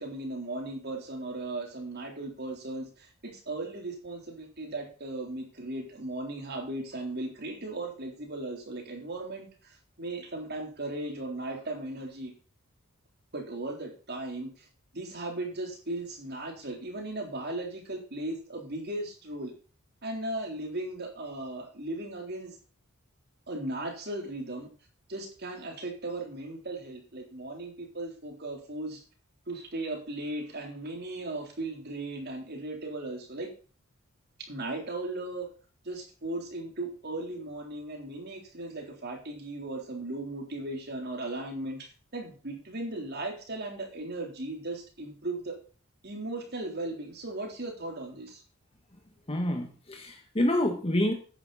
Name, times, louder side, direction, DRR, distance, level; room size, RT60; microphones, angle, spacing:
voice 1, 0.0-12.3 13.3-14.7 14.9-19.5 20.0-22.6 23.5-24.7 25.1-29.0 29.5-33.5 34.5-35.5 35.8-45.6 46.0-48.4, right 2 dB, 50° right, 2 dB, 3.7 m, -37 dB
voice 2, 49.3-51.1, left 1 dB, 25° left, 4 dB, 1.5 m, -27 dB
13.0 x 9.9 x 4.2 m, 0.39 s
head